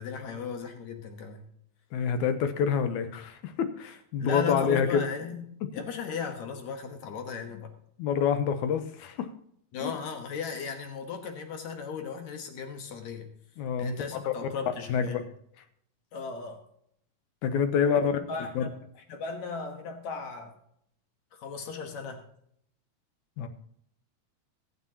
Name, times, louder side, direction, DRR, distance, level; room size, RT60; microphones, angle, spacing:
voice 1, 0.0-1.5 4.2-5.5 5.7-7.7 9.7-13.3 13.8-15.3 16.1-16.6 18.1-18.7 19.1-20.5 21.3-22.2, left 5 dB, 70° left, 4 dB, 2.5 m, -36 dB
voice 2, 1.9-5.1 8.0-9.3 9.8-9.9 13.6-13.9 14.9-15.2 17.4-18.1 18.6-18.7 23.4-23.5, left 7 dB, 90° left, 9 dB, 2.3 m, -27 dB
21.5 x 7.3 x 2.9 m, 0.69 s
omnidirectional pair, 3.3 m